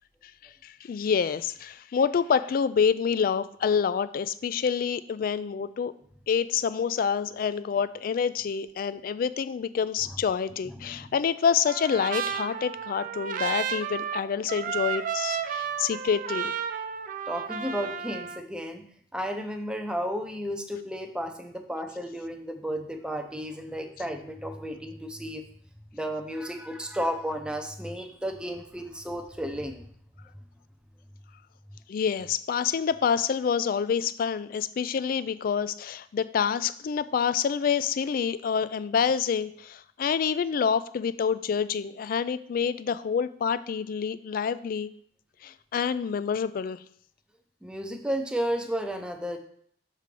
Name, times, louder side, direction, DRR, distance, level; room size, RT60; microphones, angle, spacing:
voice 1, 0.6-5.9 6.3-16.5 31.9-44.9 45.4-46.8, left 7 dB, 55° left, 14 dB, 0.3 m, -27 dB
Trumpet, 11.7-18.4, right 7 dB, 50° right, 0.4 m, -32 dB
voice 2, 17.3-18.8 19.1-25.4 25.9-29.8 47.6-49.4, equal, 5° right, 4 dB, 0.6 m, -33 dB
6.8 x 3.2 x 5.1 m, 0.62 s
head